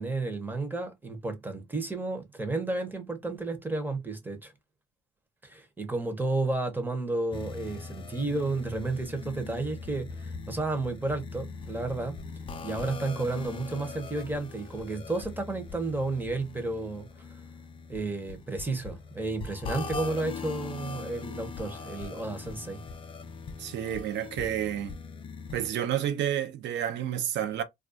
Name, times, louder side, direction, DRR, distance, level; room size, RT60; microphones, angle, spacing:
voice 1, 0.0-4.5 5.4-12.2 12.6-17.1 17.9-22.8, right 2 dB, 10° right, 0.6 m, -32 dB
sound 1, 7.3-25.7, left 4 dB, 25° left, 0.4 m, -41 dB
voice 2, 23.6-25.0 25.5-27.6, right 10 dB, 65° right, 0.6 m, -30 dB
2.3 x 2.2 x 2.4 m
cardioid pair, 120°, 20 cm